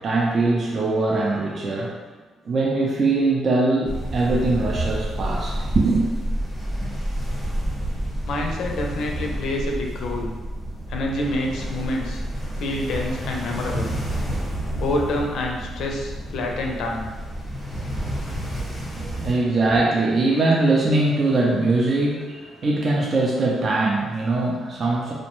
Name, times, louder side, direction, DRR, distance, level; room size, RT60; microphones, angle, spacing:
voice 1, 0.0-2.0 2.5-6.1 18.9-25.1, right 2 dB, 45° right, -3 dB, 0.4 m, -22 dB
sound 1, 3.8-19.3, right 1 dB, 5° right, 0.9 m, -29 dB
voice 2, 8.2-10.3 10.9-12.2 12.5-13.9 14.7-17.1, left 1 dB, 75° left, 1 dB, 0.4 m, -27 dB
2.6 x 2.1 x 3.0 m, 1.3 s
cardioid pair, 90°, 0 cm